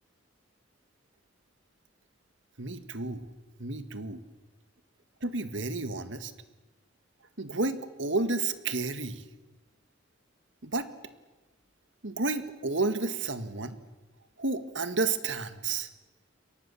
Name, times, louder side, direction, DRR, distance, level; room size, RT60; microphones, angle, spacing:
voice 1, 2.6-3.3 3.6-4.2 5.2-6.3 7.4-9.2 10.6-10.9 12.0-13.8 14.4-15.9, right 3 dB, 70° right, 10 dB, 1.9 m, -31 dB
29.5 x 23.0 x 7.2 m, 1.2 s
head